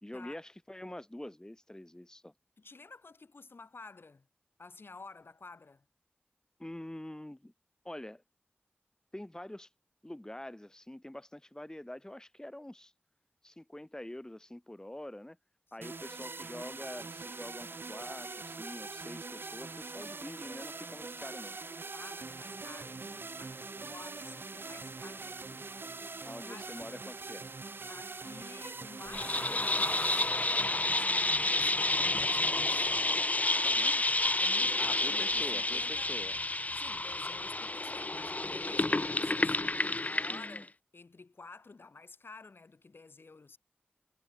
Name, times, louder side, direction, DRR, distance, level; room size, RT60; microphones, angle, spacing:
voice 1, 0.0-2.3 6.6-7.5 7.8-8.2 9.1-9.7 10.0-12.9 13.4-15.4 15.7-21.6 26.2-27.5 33.6-34.0 34.8-36.4 40.1-40.7, left 1 dB, 15° left, 1.8 m, -45 dB
voice 2, 2.6-4.3 4.6-5.9 15.8-16.2 16.5-16.6 21.9-26.1 26.5-26.7 27.9-33.0 34.4-36.1 36.7-43.6, left 3 dB, 75° left, 5.7 m, -52 dB
sound 1, 15.8-31.8, right 3 dB, 75° right, 1.8 m, -43 dB
sound 2, 29.1-40.6, left 2 dB, 45° left, 0.9 m, -30 dB
wide cardioid pair, 45°, 4 cm